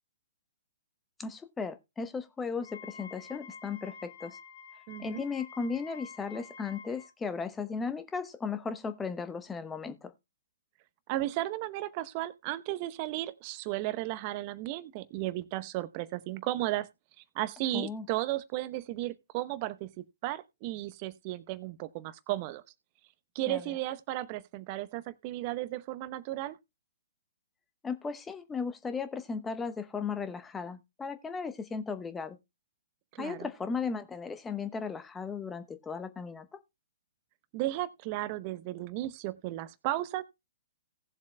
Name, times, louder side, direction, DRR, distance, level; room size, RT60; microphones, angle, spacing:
voice 1, 1.2-4.4 5.0-10.1 17.7-18.1 23.5-23.7 27.8-32.4 33.2-36.6, left 5 dB, 10° left, 1.0 m, -36 dB
Wind instrument woodwind instrument, 2.6-7.1, left 5 dB, 60° left, 2.4 m, -49 dB
voice 2, 4.9-5.2 11.1-16.9 17.2-22.6 23.3-26.6 33.1-33.5 37.5-40.2, right 16 dB, 35° right, 0.8 m, -34 dB
18.5 x 7.3 x 2.2 m
figure-of-eight pair, 120°, 0 cm